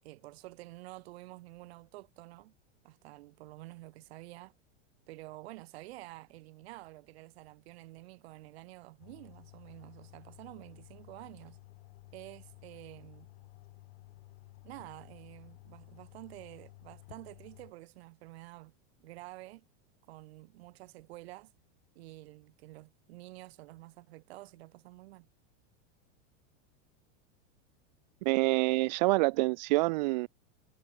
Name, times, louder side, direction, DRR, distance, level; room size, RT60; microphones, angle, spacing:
voice 1, 0.0-2.5 2.8-4.5 5.1-11.6 12.1-13.3 14.6-18.7 19.0-19.7 20.1-21.5 22.0-25.3, right 19 dB, 55° right, 7.4 m, -49 dB
sound 1, 9.0-17.7, left 20 dB, 50° left, 3.8 m, -54 dB
voice 2, 28.3-30.3, right 22 dB, 35° right, 0.5 m, -26 dB
supercardioid pair, 175°, 37 cm